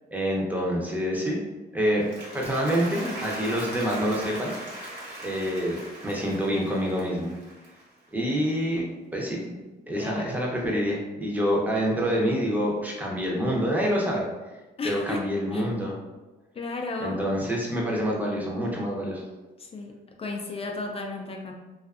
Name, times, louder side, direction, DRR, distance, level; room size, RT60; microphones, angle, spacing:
voice 1, 0.1-1.4 1.7-2.0 2.3-4.5 5.2-7.3 8.1-8.8 9.1-9.5 9.9-14.3 14.8-16.0 17.0-19.2, equal, 10° right, -3 dB, 0.6 m, -27 dB
Applause, 1.9-8.2, right 1 dB, 70° right, 1.1 m, -39 dB
voice 2, 9.9-10.4 14.8-15.7 16.6-17.2 19.6-21.5, left 3 dB, 35° left, 2 dB, 0.4 m, -34 dB
2.5 x 2.4 x 2.3 m, 1.1 s
cardioid pair, 90°, 18 cm